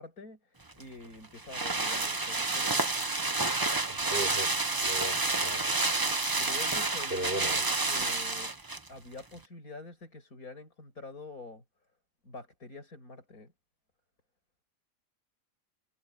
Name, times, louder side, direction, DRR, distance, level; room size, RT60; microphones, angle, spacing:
voice 1, 0.0-2.9 6.4-8.5 8.9-11.6 12.2-13.5, left 3 dB, 85° left, 6.6 m, -46 dB
sound 1, 0.7-8.9 9.2-9.3, right 3 dB, 20° right, 0.7 m, -29 dB
voice 2, 4.1-4.5 4.8-5.7 7.1-7.7, right 1 dB, 40° right, 5.8 m, -36 dB
omnidirectional pair, 1.5 m